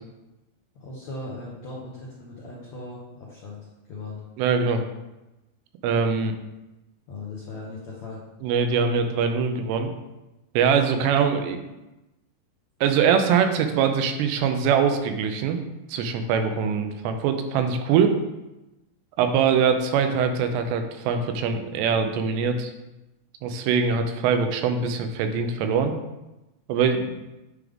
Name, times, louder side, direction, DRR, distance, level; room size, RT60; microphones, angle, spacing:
voice 1, 0.7-4.2 6.1-6.3 7.1-8.2, left 2 dB, 85° left, -5 dB, 1.5 m, -38 dB
voice 2, 4.4-4.8 5.8-6.3 8.4-9.9 10.5-11.7 12.8-15.6 15.9-18.2 19.2-22.7 23.4-25.9 26.7-27.1, right 6 dB, 90° right, 7 dB, 2.8 m, -23 dB
9.5 x 3.5 x 3.6 m, 1.0 s
omnidirectional pair, 4.8 m